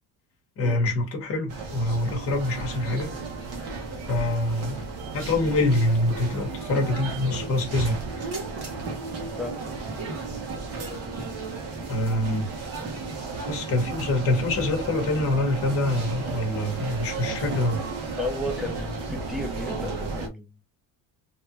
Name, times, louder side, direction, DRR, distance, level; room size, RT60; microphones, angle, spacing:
voice 1, 0.6-3.1 4.1-4.8 5.1-8.0 11.9-12.5 13.5-17.8, left 1 dB, 35° left, 1.2 m, -25 dB
sound 1, 1.5-20.3, right 3 dB, 40° right, 1.0 m, -34 dB
voice 2, 18.2-20.5, left 1 dB, ahead, 0.4 m, -33 dB
3.3 x 2.5 x 2.9 m
cardioid pair, 180°, 39 cm